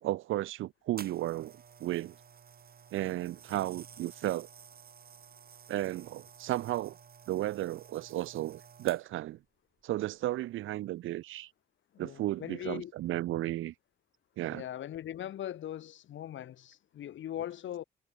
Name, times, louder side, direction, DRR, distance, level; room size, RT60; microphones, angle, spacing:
voice 1, 0.0-1.5 1.8-2.1 2.9-4.5 5.7-7.0 7.3-9.4 9.8-11.5 12.0-13.7 14.4-14.6, right 15 dB, 85° right, 1.7 m, -34 dB
sound 1, 1.0-9.3 10.0-10.2, right 7 dB, 50° right, 5.8 m, -53 dB
voice 2, 11.9-12.9 14.5-17.8, left 11 dB, 70° left, 7.3 m, -40 dB
cardioid pair, 90°, 20 cm